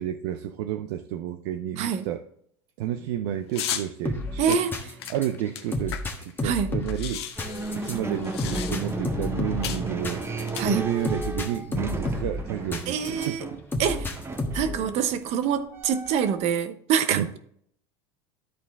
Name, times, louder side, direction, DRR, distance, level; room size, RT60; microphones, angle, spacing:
voice 1, 0.0-2.2 2.8-4.6 5.1-7.3 7.7-13.4 17.1-17.3, right 11 dB, 70° right, 0.6 m, -31 dB
sound 1, 3.5-3.9 4.5-6.3 6.6-6.7 6.9-9.0 9.6-9.9 10.4-11.2, left 10 dB, 85° left, 0.9 m, -35 dB
sound 2, 4.0-13.3 13.7-14.8, left 2 dB, 15° left, 1.4 m, -32 dB
voice 2, 4.4-4.7 6.4-6.7 10.6-10.8 12.9-13.4 13.8-14.1 14.5-17.4, right 7 dB, 55° right, 1.0 m, -25 dB
sound 3, 7.4-16.4, right 3 dB, 20° right, 1.0 m, -35 dB
13.0 x 4.3 x 3.6 m
supercardioid pair, 100°, 13 cm